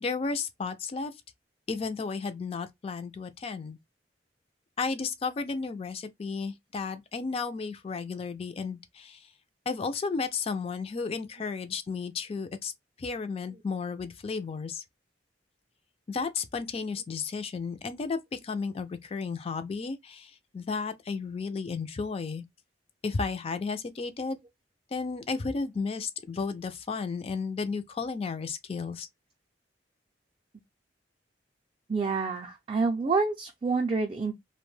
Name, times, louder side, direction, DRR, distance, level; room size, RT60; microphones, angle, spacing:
voice 1, 0.0-1.1 1.7-3.8 4.8-9.3 9.7-12.7 13.0-14.8 16.1-22.4 23.0-24.4 24.9-29.1, left 4 dB, 35° left, 0.3 m, -33 dB
voice 2, 31.9-34.3, right 4 dB, 30° right, 0.4 m, -28 dB
2.5 x 2.1 x 3.1 m
head